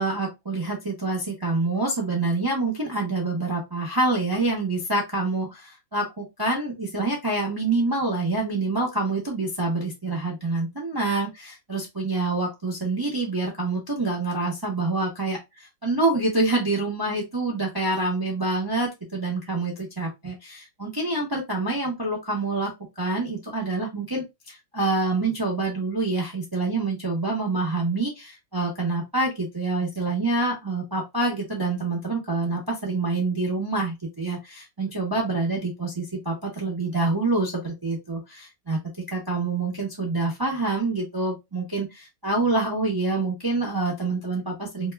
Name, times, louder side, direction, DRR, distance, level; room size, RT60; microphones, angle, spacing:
voice 1, 0.0-38.8 39.1-44.9, right 3 dB, 25° right, -1 dB, 0.5 m, -26 dB
2.7 x 2.2 x 3.2 m, 0.21 s
omnidirectional pair, 1.6 m